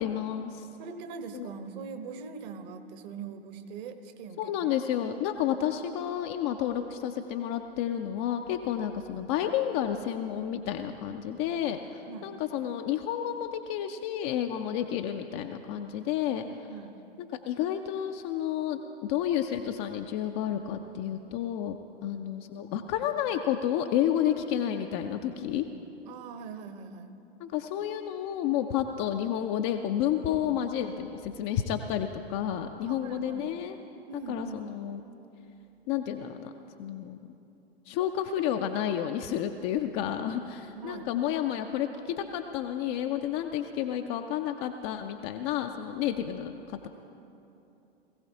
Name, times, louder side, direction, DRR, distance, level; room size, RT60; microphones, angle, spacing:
voice 1, 0.0-0.7 1.3-1.5 4.4-16.4 17.2-21.8 22.0-25.7 27.4-33.8 34.3-35.0 35.9-36.5 36.8-37.2 37.9-46.9, left 10 dB, 20° left, 5 dB, 0.3 m, -31 dB
voice 2, 0.8-4.7 8.8-8.9 12.1-12.3 16.7-17.0 22.0-22.2 26.1-27.2 32.8-33.5 34.1-34.7 40.8-41.1, right 5 dB, 40° right, 8 dB, 1.1 m, -42 dB
20.5 x 15.5 x 2.8 m, 2.8 s
figure-of-eight pair, 100°, 31 cm